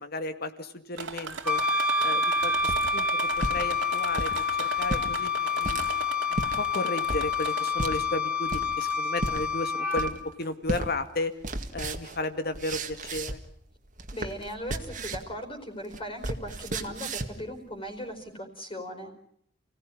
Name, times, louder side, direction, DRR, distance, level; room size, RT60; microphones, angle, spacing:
voice 1, 0.0-1.6 2.0-5.9 6.3-11.4 11.7-13.4, left 2 dB, 55° left, 9 dB, 2.1 m, -34 dB
sound 1, 1.0-8.0 8.5-9.1 9.9-10.0 10.4-10.5, right 5 dB, 75° right, 2.5 m, -38 dB
Wind instrument woodwind instrument, 1.5-10.1, left 4 dB, 10° right, 2.7 m, -28 dB
sound 2, 2.7-3.6 4.1-4.4 4.8-5.1 5.6-5.9 6.3-6.6 7.1-7.3 7.8-8.0 8.5-8.8 9.2-9.4 10.0-10.3 10.7-10.9 11.2-13.6 13.9-15.3 15.6-17.4, right 2 dB, 45° right, 2.1 m, -34 dB
voice 2, 14.1-19.1, equal, 30° left, 4 dB, 4.6 m, -38 dB
29.5 x 17.5 x 9.9 m, 0.73 s
head